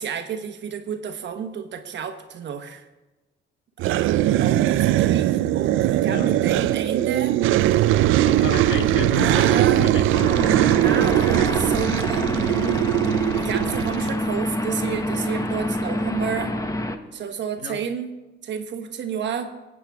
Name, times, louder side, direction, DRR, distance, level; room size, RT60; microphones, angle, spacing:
voice 1, 0.0-2.9 3.8-4.0 4.3-7.4 9.2-9.9 10.7-12.8 13.1-16.6 17.1-18.1 18.4-19.5, right 7 dB, 65° right, 6 dB, 1.2 m, -30 dB
sound 1, 3.8-14.1, right 13 dB, 85° right, 0.4 m, -20 dB
voice 2, 8.3-10.4 17.6-17.8, left 6 dB, 70° left, 7 dB, 1.2 m, -31 dB
sound 2, 10.1-17.0, left 1 dB, 15° left, 1.0 m, -27 dB
19.0 x 8.4 x 3.5 m, 1.1 s
cardioid pair, 90°, 20 cm